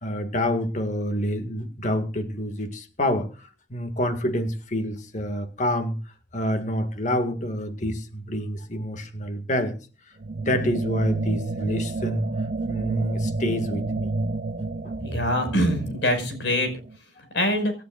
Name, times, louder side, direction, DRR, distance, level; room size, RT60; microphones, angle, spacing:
voice 1, 0.0-6.0 6.3-9.8 10.4-12.3 12.7-14.1 14.6-15.0, equal, 40° left, 7 dB, 1.9 m, -27 dB
sound 1, 10.2-17.0, right 2 dB, 45° right, 0.7 m, -30 dB
voice 2, 15.0-16.7 17.3-17.7, equal, 85° left, 7 dB, 5.4 m, -23 dB
25.5 x 12.0 x 2.5 m, 0.33 s
head